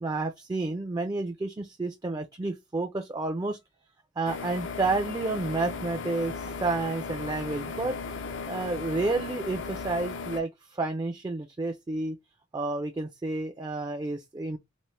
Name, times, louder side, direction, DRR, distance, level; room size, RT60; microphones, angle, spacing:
voice 1, 0.0-3.6 4.2-8.0 8.5-12.2 12.5-14.6, right 3 dB, 20° right, 0.4 m, -30 dB
sound 1, 4.3-10.4, left 4 dB, 85° left, 0.6 m, -36 dB
4.2 x 2.0 x 3.1 m
head